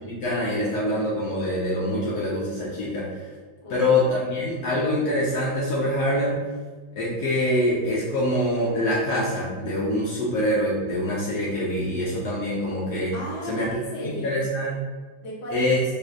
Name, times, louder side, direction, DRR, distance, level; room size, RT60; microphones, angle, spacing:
voice 1, 0.0-3.2 3.7-6.4 6.9-13.1 13.5-13.7 14.0-14.7 15.5-15.8, left 1 dB, 70° left, -7 dB, 1.1 m, -25 dB
voice 2, 3.6-3.9 13.1-14.4 15.2-15.7, left 1 dB, 50° left, -5 dB, 0.8 m, -34 dB
4.1 x 2.5 x 2.4 m, 1.4 s
omnidirectional pair, 2.0 m